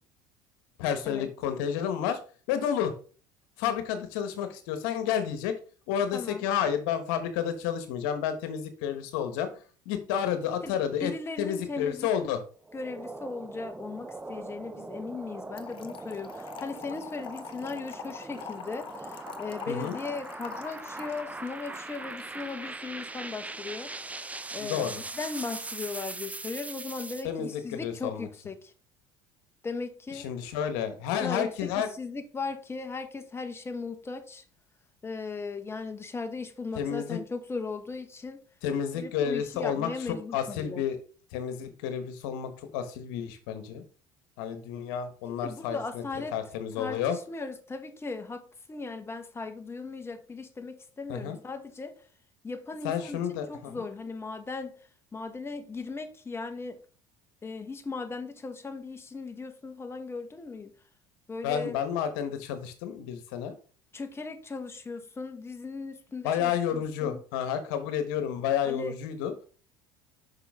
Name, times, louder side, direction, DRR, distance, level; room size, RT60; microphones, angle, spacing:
voice 1, 0.8-2.2 2.5-2.9 3.6-5.5 5.9-11.1 11.4-12.4 19.7-20.0 24.6-25.0 27.2-28.3 30.1-31.9 36.7-37.2 38.6-39.9 40.3-41.0 41.3-43.8 44.4-46.0 46.3-47.2 51.1-51.4 52.8-53.9 61.4-63.6 66.2-69.3, left 9 dB, 80° left, 1.2 m, -30 dB
voice 2, 6.1-6.5 10.6-12.1 12.7-23.9 24.5-28.7 29.6-30.3 31.2-34.4 35.0-38.4 38.9-40.8 45.3-46.4 46.8-48.4 48.7-52.0 52.4-54.7 55.1-56.8 57.4-60.7 61.3-61.8 63.9-67.2 68.7-68.9, left 4 dB, 20° left, 1.3 m, -37 dB
sound 1, 12.6-27.2, right 3 dB, 10° right, 0.5 m, -41 dB
Trickle dribble / Fill (with liquid), 15.6-22.7, left 9 dB, 45° left, 0.8 m, -45 dB
6.0 x 5.6 x 3.6 m
supercardioid pair, 85°, 12 cm